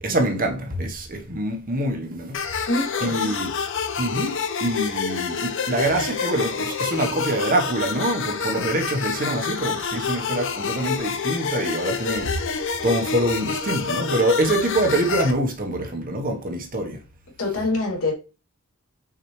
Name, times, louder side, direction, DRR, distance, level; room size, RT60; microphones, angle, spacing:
voice 1, 0.0-2.7 3.0-3.5 4.0-12.5 12.8-17.0, right 1 dB, 40° right, 1.3 m, -25 dB
sound 1, 2.3-15.3, left 6 dB, 65° left, 0.8 m, -28 dB
voice 2, 2.7-3.4 17.4-18.1, left 2 dB, 85° left, 2.7 m, -25 dB
5.9 x 4.9 x 3.2 m
head